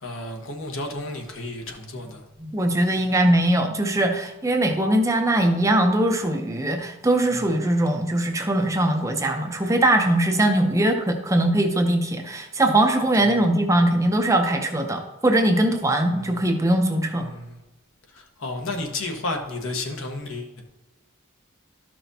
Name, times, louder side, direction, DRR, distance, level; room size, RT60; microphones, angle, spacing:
voice 1, 0.0-2.3 7.3-7.5 13.2-13.4 16.1-16.4 17.1-17.6 18.1-20.6, left 2 dB, 65° left, 3 dB, 1.2 m, -32 dB
voice 2, 2.4-17.3, right 1 dB, 15° right, 4 dB, 0.6 m, -21 dB
12.5 x 5.9 x 2.7 m, 1.1 s
head